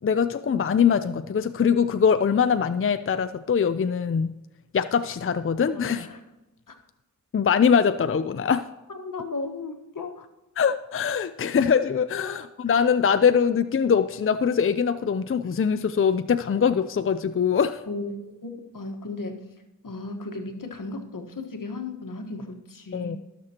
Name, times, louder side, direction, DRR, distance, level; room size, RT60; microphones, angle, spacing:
voice 1, 0.0-4.3 4.7-6.1 7.3-8.7 10.6-17.8 22.9-23.2, left 7 dB, 40° left, 11 dB, 0.5 m, -22 dB
voice 2, 5.7-6.2 6.7-6.8 8.9-10.3 12.1-12.4 17.9-19.4 19.8-23.1, left 3 dB, 80° left, 5 dB, 1.3 m, -35 dB
19.5 x 6.7 x 2.9 m, 1.0 s
cardioid pair, 40°, 32 cm